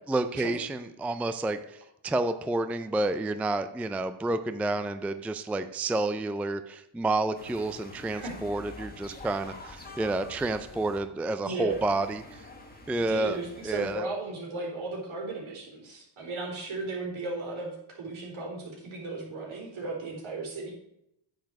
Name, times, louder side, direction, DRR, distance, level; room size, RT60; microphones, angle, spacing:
voice 1, 0.1-12.4 12.9-13.4 13.6-14.1, right 2 dB, 5° right, 10 dB, 0.3 m, -30 dB
sound 1, 7.3-11.0 11.7-13.9, left 2 dB, 20° left, 1.7 m, -47 dB
voice 2, 11.4-11.8 13.1-20.7, right 3 dB, 70° right, -2 dB, 4.2 m, -35 dB
9.1 x 7.4 x 4.7 m, 0.80 s
cardioid pair, 105°, 50 cm